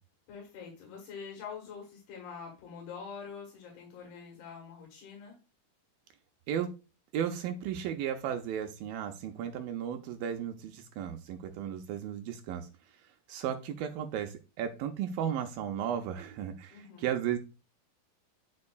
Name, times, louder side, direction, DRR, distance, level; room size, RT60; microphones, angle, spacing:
voice 1, 0.3-5.3 16.7-17.1, left 6 dB, 90° left, 0 dB, 3.6 m, -45 dB
voice 2, 7.1-12.7 13.3-17.4, right 9 dB, 80° right, 5 dB, 2.2 m, -34 dB
9.4 x 5.3 x 2.3 m, 0.30 s
omnidirectional pair, 4.4 m